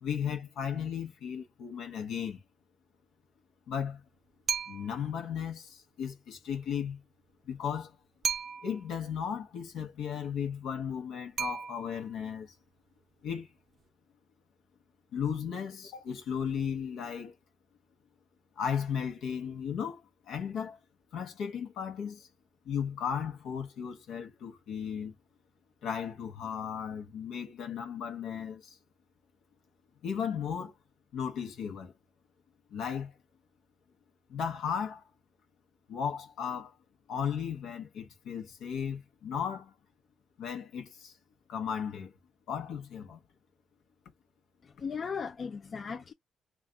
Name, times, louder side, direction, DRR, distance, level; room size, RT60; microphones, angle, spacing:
voice 1, 0.0-2.4 3.7-4.0 4.7-7.0 7.5-7.9 8.6-12.5 13.2-13.5 15.1-17.3 18.6-20.0 20.3-20.8 21.1-22.3 22.7-25.1 25.8-28.8 30.0-30.7 31.1-31.9 32.7-33.1 34.3-35.0 35.9-36.7 37.1-39.7 40.4-41.1 41.5-42.1 42.5-43.2, left 7 dB, 80° left, 0.9 m, -35 dB
sound 1, 4.5-5.1 8.2-8.9 11.4-12.2, right 7 dB, 60° right, 0.4 m, -35 dB
voice 2, 44.6-46.1, left 6 dB, 45° left, 0.3 m, -37 dB
3.3 x 2.4 x 3.8 m
cardioid pair, 90°, 0 cm